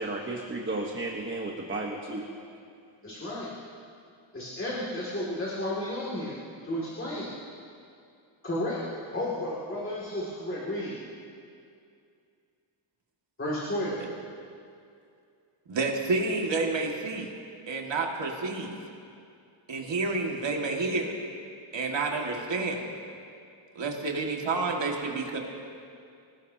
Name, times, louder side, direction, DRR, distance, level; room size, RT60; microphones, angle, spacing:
voice 1, 0.0-2.2, right 2 dB, 25° right, 0 dB, 1.2 m, -33 dB
voice 2, 3.0-3.5 4.3-6.4 6.6-7.3 8.4-8.8 9.1-11.0 13.4-14.0, left 1 dB, 25° left, -6 dB, 2.4 m, -32 dB
voice 3, 15.7-17.3 17.7-18.7 19.7-21.1 21.7-22.8 23.8-25.4, right 3 dB, 60° right, 0 dB, 2.1 m, -29 dB
26.5 x 19.0 x 2.8 m, 2.4 s
wide cardioid pair, 175°, 48 cm